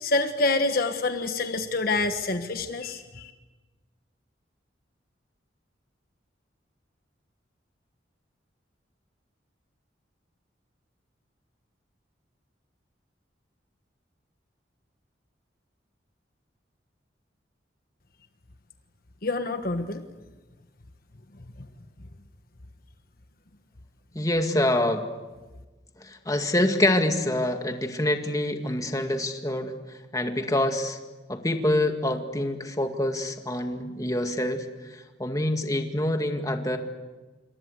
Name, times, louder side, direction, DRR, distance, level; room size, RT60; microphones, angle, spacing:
voice 1, 0.0-3.3 19.2-20.0, left 3 dB, 50° left, 7 dB, 1.4 m, -27 dB
voice 2, 24.2-25.1 26.0-29.7 30.1-31.0 31.3-34.7 34.9-36.8, left 1 dB, 20° left, 5 dB, 2.0 m, -26 dB
27.5 x 24.5 x 8.1 m, 1.2 s
head